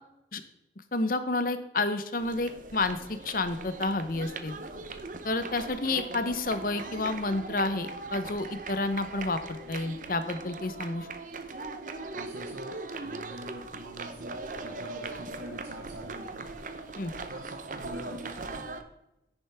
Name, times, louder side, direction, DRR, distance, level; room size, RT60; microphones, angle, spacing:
voice 1, 0.9-4.6 5.2-11.1 17.0-17.1, left 2 dB, 50° left, 10 dB, 0.9 m, -30 dB
sound 1, 2.2-18.8, right 3 dB, 45° right, 0.8 m, -40 dB
voice 2, 12.1-16.6 17.3-18.7, right 1 dB, 80° right, 2 dB, 1.0 m, -44 dB
10.0 x 9.9 x 3.5 m, 0.89 s
head